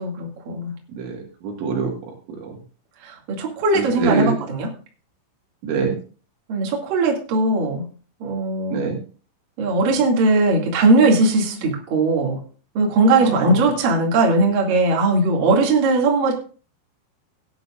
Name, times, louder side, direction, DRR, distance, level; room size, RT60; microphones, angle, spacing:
voice 1, 0.0-0.7 3.0-4.7 6.5-7.9 8.2-8.8 9.6-12.4 12.8-16.3, right 2 dB, 50° right, -1 dB, 3.6 m, -19 dB
voice 2, 0.9-2.6 3.8-4.4 5.6-6.0 8.7-9.0 13.2-13.7, right 4 dB, 70° right, 0 dB, 4.1 m, -25 dB
17.0 x 11.0 x 2.5 m, 0.38 s
omnidirectional pair, 5.7 m